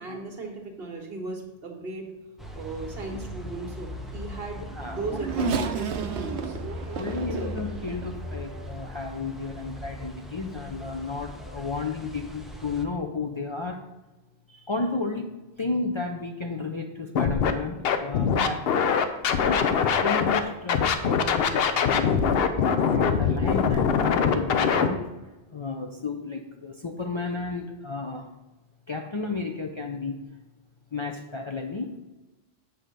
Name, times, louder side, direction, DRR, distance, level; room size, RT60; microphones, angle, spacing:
voice 1, 0.0-2.1 2.5-6.6 7.3-7.5, right 3 dB, 65° right, 1 dB, 1.6 m, -37 dB
sound 1, 2.4-12.8, equal, ahead, 0.6 m, -39 dB
Race car auto racing / Accelerating revving vroom, 4.3-8.9 9.6-9.7 10.8-11.0, right 7 dB, 80° right, 1.0 m, -33 dB
voice 2, 4.6-5.6 6.9-13.8 14.5-15.3 15.6-18.8 19.4-19.6 20.0-22.1 22.8-25.0 25.5-28.3 28.9-30.2 30.9-32.0, left 3 dB, 35° left, 1 dB, 0.5 m, -32 dB
Scratching (performance technique), 17.1-17.5 17.8-20.4 20.7-24.9, left 6 dB, 70° left, 0.8 m, -22 dB
8.0 x 3.8 x 6.6 m, 1.1 s
omnidirectional pair, 1.1 m